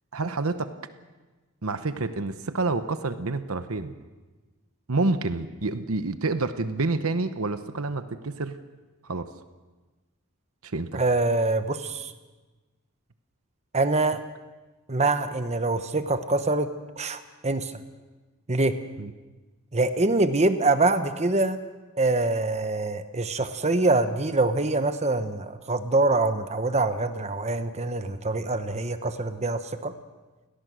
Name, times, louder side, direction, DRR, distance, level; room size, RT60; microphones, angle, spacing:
voice 1, 0.1-0.7 1.6-3.9 4.9-8.6 9.0-9.3 10.6-11.0 19.0-19.1, right 3 dB, 75° right, 10 dB, 1.0 m, -28 dB
voice 2, 10.9-12.1 13.7-14.2 14.9-17.7 18.5-18.8 19.7-21.6 22.0-29.9, right 2 dB, 30° right, 10 dB, 1.0 m, -24 dB
29.5 x 18.0 x 6.4 m, 1.2 s
head